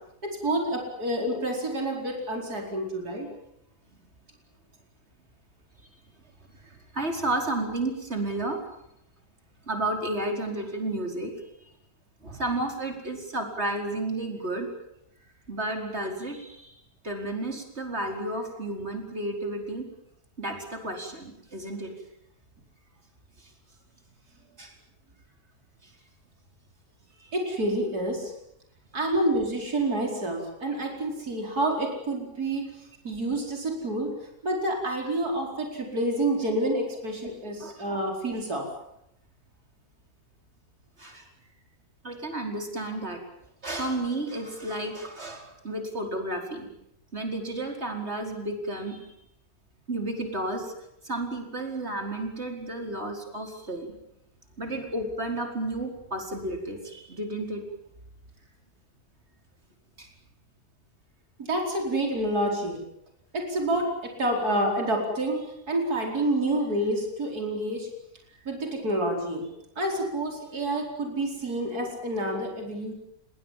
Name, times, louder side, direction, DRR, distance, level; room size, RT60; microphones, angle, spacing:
voice 1, 0.2-3.3 27.2-28.3 28.9-32.7 33.0-34.1 34.4-38.7 61.5-62.8 63.3-67.9 68.5-69.5 69.8-72.9, right 1 dB, 80° right, 1 dB, 5.2 m, -28 dB
voice 2, 6.7-8.6 9.7-11.3 12.2-14.7 15.5-16.8 17.0-19.8 20.4-21.9 23.4-23.5 24.6-24.7 25.8-25.9 37.6-37.8 41.0-41.3 42.0-43.2 43.6-46.7 47.1-49.0 49.9-50.7 51.0-53.9 54.6-57.6 60.0-60.1, right 2 dB, 45° right, 3 dB, 5.1 m, -32 dB
26.5 x 22.5 x 7.5 m, 0.80 s
omnidirectional pair, 1.6 m